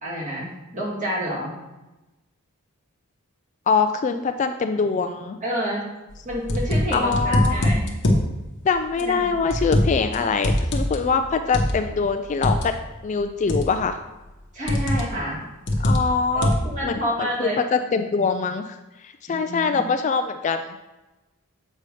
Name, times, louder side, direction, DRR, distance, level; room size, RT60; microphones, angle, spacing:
voice 1, 0.0-1.6 5.4-5.9 6.2-7.9 9.0-9.3 14.5-15.5 16.3-17.6 19.3-19.8, equal, 35° right, -5 dB, 2.1 m, -29 dB
voice 2, 3.7-5.4 6.9-7.7 8.6-12.7 13.0-14.0 15.8-16.5 16.8-20.7, left 5 dB, 35° left, 8 dB, 0.3 m, -23 dB
sound 1, 6.1-8.3 9.0-10.1 10.4-12.7 13.5-13.9 14.7-15.2 15.7-16.8, left 1 dB, 55° left, 0.9 m, -22 dB
7.5 x 5.3 x 3.3 m, 1.0 s
head